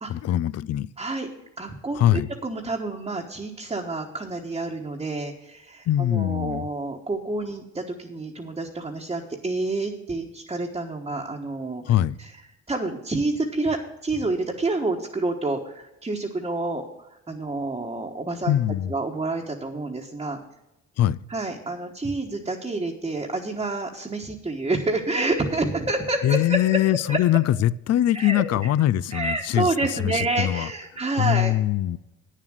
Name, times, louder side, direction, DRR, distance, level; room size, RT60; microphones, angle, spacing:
voice 1, 0.1-0.9 2.0-2.3 5.9-6.7 11.8-12.2 18.5-18.9 21.0-21.2 26.2-30.7 31.2-32.0, left 12 dB, 55° left, 0.4 m, -22 dB
voice 2, 1.0-1.3 1.6-11.8 12.2-12.3 12.7-16.8 17.3-18.5 18.9-20.4 21.3-26.6 27.1-27.2 28.1-28.4 29.1-31.5, right 2 dB, 20° right, 1.2 m, -28 dB
9.2 x 7.4 x 6.2 m
cardioid pair, 90°, 30 cm